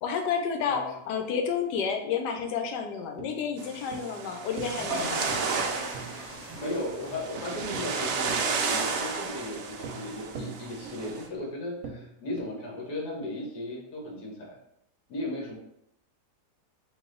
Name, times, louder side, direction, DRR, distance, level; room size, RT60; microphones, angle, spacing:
voice 1, 0.0-5.3, left 6 dB, 85° left, 5 dB, 1.2 m, -30 dB
sound 1, 2.4-12.5, right 4 dB, 65° right, 0.9 m, -46 dB
sound 2, 3.6-11.3, right 5 dB, 80° right, 0.6 m, -33 dB
sound 3, 4.6-11.3, right 1 dB, 25° right, 1.0 m, -43 dB
voice 2, 6.6-14.6 15.1-15.6, left 1 dB, 70° left, -2 dB, 1.6 m, -36 dB
4.0 x 2.6 x 3.7 m, 0.77 s
omnidirectional pair, 1.8 m